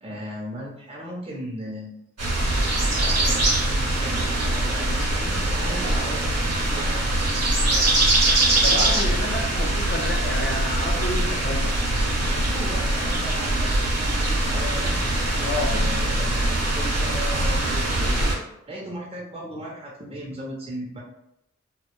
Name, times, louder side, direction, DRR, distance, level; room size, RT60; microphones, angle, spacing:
voice 1, 0.0-2.0 2.9-6.2 6.7-8.0 12.3-15.0 15.7-21.0, right 1 dB, 20° right, -3 dB, 0.5 m, -36 dB
sound 1, 2.2-18.3, right 1 dB, 60° right, 0.8 m, -22 dB
voice 2, 8.6-11.7 15.4-15.8, left 1 dB, 40° left, 0 dB, 0.5 m, -30 dB
2.1 x 2.0 x 2.9 m, 0.83 s
cardioid pair, 45°, 29 cm